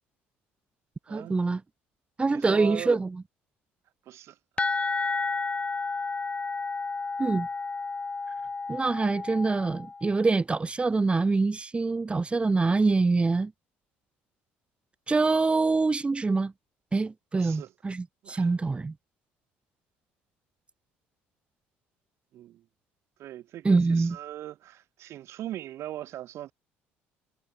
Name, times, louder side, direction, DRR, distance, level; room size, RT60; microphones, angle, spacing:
voice 1, 1.1-1.6 2.2-3.1 7.2-7.5 8.7-13.5 15.1-16.5 16.9-18.9 23.6-24.2, right 3 dB, 20° right, 3.6 m, -25 dB
voice 2, 2.3-3.0 4.1-4.4 17.3-17.7 18.2-18.5 22.3-22.6 23.2-26.5, right 13 dB, 65° right, 4.6 m, -40 dB
sound 1, 4.6-10.2, left 4 dB, 25° left, 2.1 m, -32 dB
supercardioid pair, 75°, 5 cm